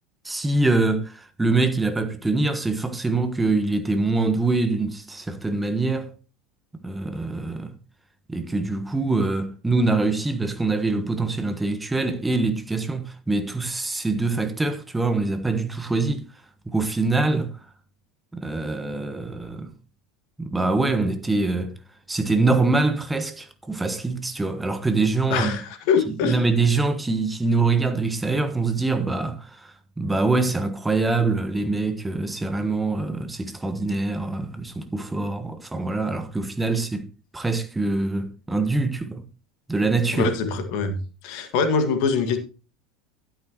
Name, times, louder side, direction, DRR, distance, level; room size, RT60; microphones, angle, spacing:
voice 1, 0.2-6.1 6.8-7.7 8.3-16.3 16.7-17.5 18.3-19.7 20.4-21.8 22.1-25.6 26.2-37.1 37.3-39.2 39.7-40.3, right 3 dB, 10° right, 1.3 m, -24 dB
voice 2, 25.3-26.4 40.1-41.0 41.2-42.4, left 5 dB, 55° left, 1.9 m, -23 dB
12.0 x 10.0 x 3.0 m
figure-of-eight pair, 75°, 0 cm